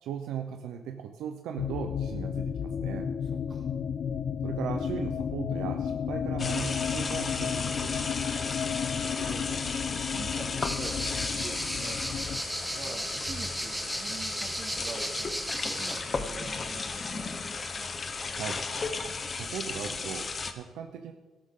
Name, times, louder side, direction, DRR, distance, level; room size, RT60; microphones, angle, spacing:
voice 1, 0.0-3.1 4.4-8.3 18.3-18.7 19.3-21.1, right 8 dB, 85° right, 5 dB, 0.7 m, -38 dB
sound 1, 1.6-12.4, left 7 dB, 60° left, 0.5 m, -33 dB
voice 2, 3.3-3.7 8.8-9.5 9.9-12.1 12.7-17.4, right 3 dB, 45° right, 0 dB, 2.6 m, -45 dB
sound 2, 6.4-20.5, left 4 dB, 35° left, 1.0 m, -35 dB
sound 3, 10.6-16.0, right 1 dB, 5° right, 1.2 m, -35 dB
13.5 x 11.5 x 3.8 m, 1.2 s
cardioid pair, 90°, 0 cm